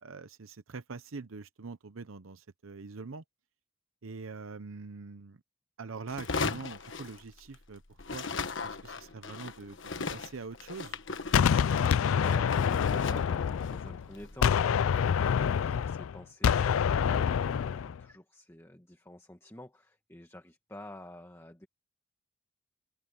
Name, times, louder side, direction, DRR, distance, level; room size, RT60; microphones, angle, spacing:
voice 1, 0.0-3.2 4.0-5.4 5.8-8.3 8.6-9.8 10.1-11.0, right 4 dB, 75° right, 0.7 m, -44 dB
sound 1, 6.1-7.7 8.0-15.2, left 4 dB, 60° left, 1.3 m, -38 dB
Gunshot gunfire, 11.3-14.0 14.4-18.0, left 7 dB, 75° left, 0.4 m, -26 dB
voice 2, 12.1-21.7, left 1 dB, 10° left, 1.5 m, -47 dB
open air
head